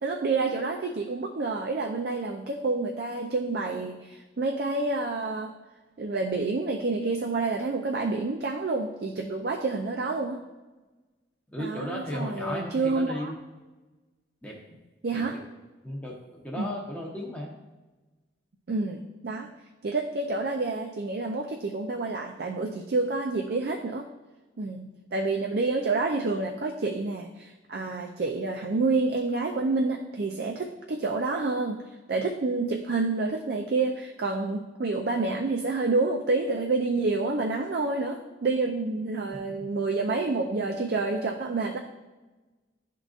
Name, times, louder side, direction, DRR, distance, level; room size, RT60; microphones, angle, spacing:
voice 1, 0.0-5.5 6.0-10.4 11.6-13.3 15.0-15.4 16.6-16.7 18.7-19.5 19.8-24.1 24.6-31.8 32.1-41.8, right 3 dB, 55° right, 2 dB, 0.4 m, -28 dB
voice 2, 11.5-13.3 14.4-14.6 15.1-15.4 15.8-17.5, equal, 10° left, -3 dB, 0.7 m, -35 dB
11.0 x 3.7 x 2.4 m, 1.2 s
head